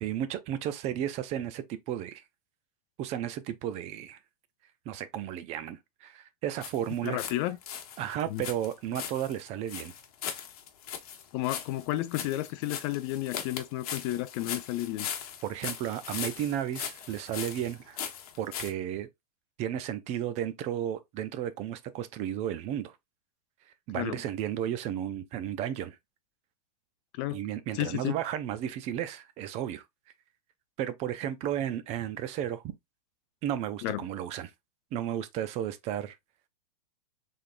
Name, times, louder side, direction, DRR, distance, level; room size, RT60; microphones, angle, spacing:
voice 1, 0.0-2.2 3.0-4.2 4.9-7.2 8.0-9.9 15.4-18.0 18.4-19.1 19.6-23.0 23.9-26.0 27.3-29.9 30.8-32.6 33.4-34.5 34.9-36.2, right 11 dB, 35° right, 0.5 m, -33 dB
sound 1, 6.6-7.4 7.6-18.7, left 9 dB, 65° left, 1.0 m, -39 dB
voice 2, 7.0-7.6 8.3-8.5 11.3-15.1 23.9-24.2 27.2-27.4 27.7-28.2 33.8-34.0, left 15 dB, 40° left, 0.4 m, -32 dB
3.7 x 3.4 x 2.5 m
hypercardioid pair, 135°, 21 cm